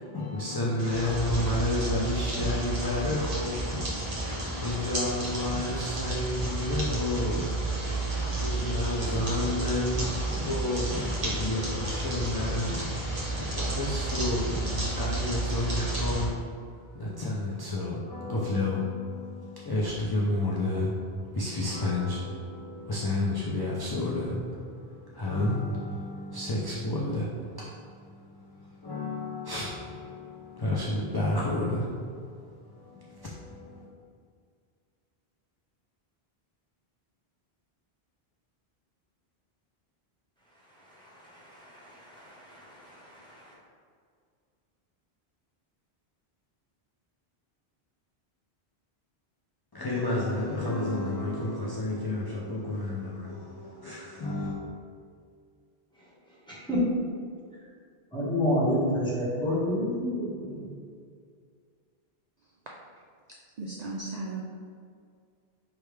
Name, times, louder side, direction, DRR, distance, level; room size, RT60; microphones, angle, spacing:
voice 1, 0.0-33.9 49.7-54.6, left 2 dB, 35° left, -5 dB, 0.4 m, -31 dB
sound 1, 0.8-16.2, right 2 dB, 40° right, 1.0 m, -31 dB
voice 2, 40.8-43.5 56.5-56.8 58.1-60.7, left 1 dB, 5° left, -9 dB, 1.3 m, -30 dB
voice 3, 63.6-64.4, right 3 dB, 55° right, -3 dB, 0.5 m, -35 dB
4.9 x 3.4 x 3.2 m, 2.2 s
omnidirectional pair, 1.0 m